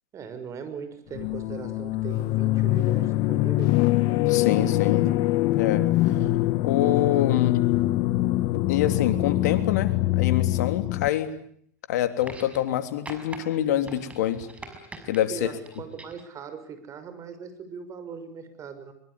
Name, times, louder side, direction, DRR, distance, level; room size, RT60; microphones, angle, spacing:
voice 1, 0.1-3.9 15.3-18.9, right 6 dB, 35° right, 10 dB, 6.2 m, -39 dB
sound 1, 1.1-11.1, left 16 dB, 55° left, 1.5 m, -23 dB
voice 2, 4.2-5.1 5.4-5.9 6.6-7.6 8.7-11.3 11.9-14.5 15.1-15.5, left 12 dB, 70° left, 8 dB, 3.3 m, -26 dB
sound 2, 12.2-12.8 13.1-13.4 13.9-15.2 15.7-16.3 17.3-17.4, right 2 dB, 15° right, 5.9 m, -42 dB
23.5 x 23.0 x 9.9 m, 0.65 s
hypercardioid pair, 100°, 9 cm